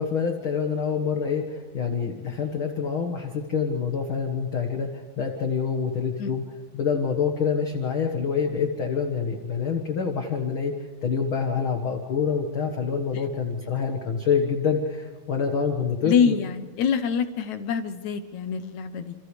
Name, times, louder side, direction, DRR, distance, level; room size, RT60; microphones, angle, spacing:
voice 1, 0.0-6.4 6.7-10.7 11.0-16.4, left 6 dB, 50° left, 3 dB, 1.7 m, -26 dB
voice 2, 16.0-19.1, left 7 dB, 70° left, 9 dB, 1.9 m, -25 dB
29.0 x 28.5 x 3.3 m, 1.4 s
omnidirectional pair, 4.2 m